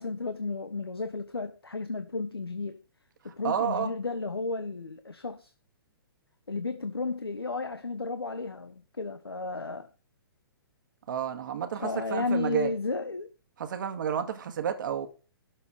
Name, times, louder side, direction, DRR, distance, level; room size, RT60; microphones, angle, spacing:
voice 1, 0.0-2.8 3.2-5.5 6.5-9.9 11.7-13.3, left 3 dB, 85° left, 1.0 m, -33 dB
voice 2, 3.4-3.9 11.1-12.7 13.6-15.1, right 8 dB, 55° right, 2.0 m, -31 dB
12.0 x 4.2 x 6.6 m
figure-of-eight pair, 120°, 13 cm